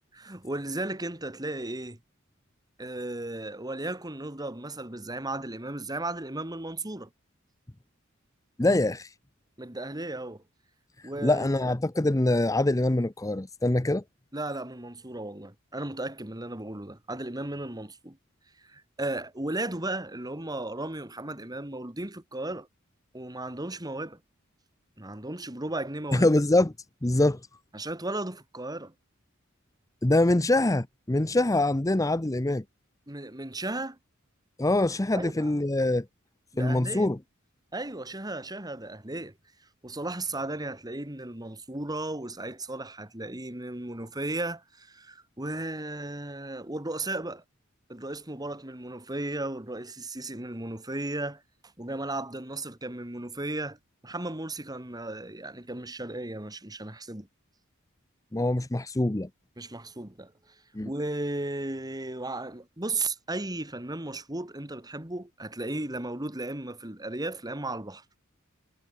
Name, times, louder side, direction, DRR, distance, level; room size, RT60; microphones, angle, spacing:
voice 1, 0.1-2.0 2.8-7.1 9.6-10.4 11.0-11.7 14.3-18.2 18.6-22.7 23.1-24.2 25.0-26.3 27.7-28.9 33.1-34.0 35.1-35.7 36.5-37.1 37.7-39.3 39.8-47.4 47.9-51.4 51.8-53.8 54.0-57.3 59.6-60.3 60.8-68.0, right 2 dB, 20° right, 2.5 m, -35 dB
voice 2, 8.6-9.1 11.2-14.0 26.1-26.7 27.0-27.4 30.0-32.6 34.6-36.0 36.6-37.2 58.3-59.3 60.7-60.9, left 2 dB, 15° left, 0.7 m, -24 dB
head